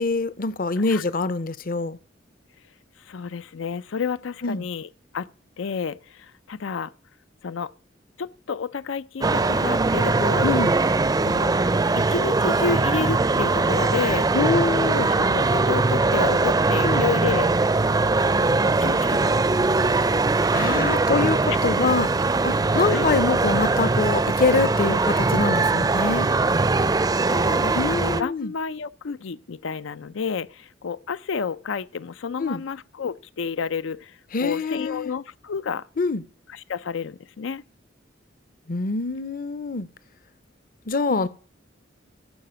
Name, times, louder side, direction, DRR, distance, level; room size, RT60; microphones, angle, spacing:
voice 1, 0.0-2.0 4.4-4.7 10.4-10.7 14.3-15.1 16.8-17.0 20.5-22.1 22.4-26.3 27.7-28.5 32.4-32.6 34.3-35.1 36.0-36.2 38.7-39.9 40.9-41.3, left 3 dB, 50° left, 0.7 m, -24 dB
voice 2, 3.0-5.3 5.6-6.9 7.4-7.7 8.2-10.5 11.2-11.5 12.0-14.3 15.1-17.5 18.3-19.6 22.9-23.1 27.3-35.9 36.5-37.6 41.1-41.3, left 5 dB, 90° left, 0.5 m, -30 dB
sound 1, 9.2-28.2, right 3 dB, 20° right, 0.4 m, -21 dB
14.5 x 5.0 x 7.7 m
head